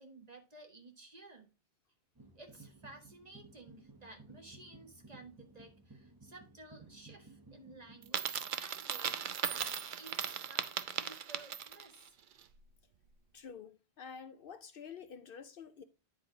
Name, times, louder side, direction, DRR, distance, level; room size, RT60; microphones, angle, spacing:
voice 1, 0.0-1.5 2.3-12.2, right 2 dB, 40° right, 1.7 m, -55 dB
sound 1, 2.1-8.1, right 3 dB, 20° right, 0.9 m, -57 dB
Coin (dropping), 8.0-11.9, right 8 dB, 55° right, 0.7 m, -37 dB
voice 2, 13.3-15.8, left 6 dB, 60° left, 0.8 m, -49 dB
9.7 x 4.4 x 4.7 m
omnidirectional pair, 1.1 m